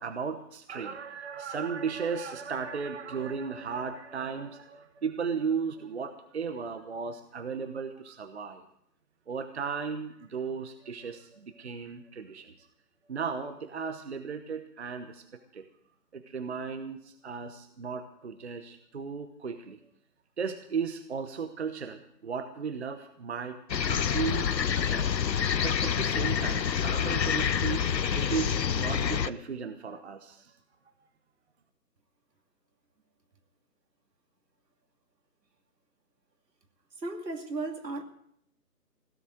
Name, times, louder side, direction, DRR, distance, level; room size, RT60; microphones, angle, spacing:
voice 1, 0.0-8.7 9.3-12.7 13.1-15.2 15.5-15.6 16.1-19.8 20.4-23.6 23.8-27.8 28.1-30.5, right 6 dB, 40° right, 8 dB, 1.0 m, -35 dB
sound 1, 23.7-29.3, left 7 dB, 85° left, 0.8 m, -27 dB
voice 2, 37.0-38.0, right 2 dB, 80° right, 4 dB, 2.7 m, -35 dB
17.0 x 7.3 x 9.3 m, 0.71 s
figure-of-eight pair, 160°, 49 cm